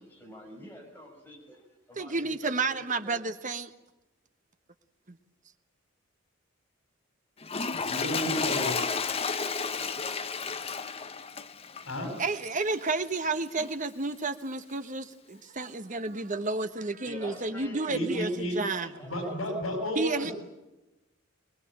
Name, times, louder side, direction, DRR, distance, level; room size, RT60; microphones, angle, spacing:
voice 1, 0.0-3.2 17.0-19.5, equal, 10° left, -1 dB, 6.4 m, -47 dB
voice 2, 2.0-3.7 5.1-5.2 12.2-18.9 19.2-19.6 19.9-20.3, right 3 dB, 40° right, 9 dB, 1.2 m, -31 dB
Toilet flush, 7.4-12.9 13.6-13.7, left 5 dB, 30° left, 0.8 m, -32 dB
voice 3, 7.8-8.8 11.9-12.1 17.9-18.6 18.9-20.3, equal, 80° left, 4 dB, 7.2 m, -32 dB
24.0 x 20.5 x 8.8 m, 0.98 s
head